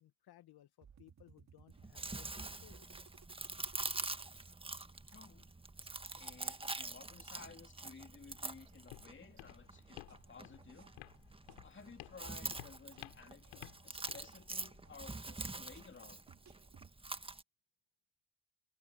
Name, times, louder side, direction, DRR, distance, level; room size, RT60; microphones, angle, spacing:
voice 1, 0.0-2.9, left 13 dB, 55° left, 1.9 m, -62 dB
sound 1, 0.8-4.1 4.4-4.5 4.8-5.5 5.8-7.3 7.8-8.3 8.7-9.4 9.7-16.9, right 7 dB, 40° right, 2.4 m, -63 dB
Chewing mastication, 1.7-17.4, right 2 dB, 10° right, 1.6 m, -45 dB
voice 2, 4.8-5.5 6.1-10.9 11.6-16.3, left 5 dB, 25° left, 2.5 m, -56 dB
Walk footsteps, 8.2-16.2, left 26 dB, 80° left, 5.4 m, -56 dB
hypercardioid pair, 65°, 44 cm